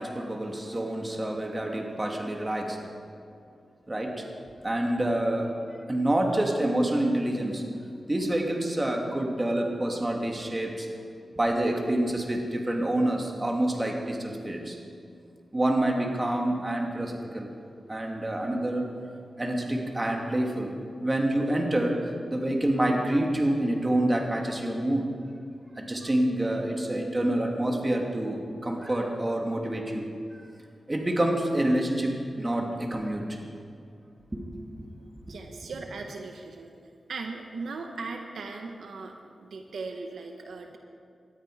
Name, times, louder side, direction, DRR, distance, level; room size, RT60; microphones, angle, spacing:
voice 1, 0.0-2.8 3.9-4.3 4.6-5.5 5.9-7.6 8.1-10.9 11.4-14.8 15.5-17.5 17.9-18.9 19.4-20.7 21.0-22.0 22.3-25.1 25.8-30.1 30.9-33.4 34.3-34.4 34.8-34.9 35.3-35.4, right 1 dB, 25° right, 1 dB, 2.6 m, -27 dB
voice 2, 35.3-36.7 37.1-39.2 39.4-40.8, right 3 dB, 85° right, 3 dB, 1.2 m, -38 dB
19.5 x 13.0 x 5.0 m, 2.4 s
cardioid pair, 65°, 0 cm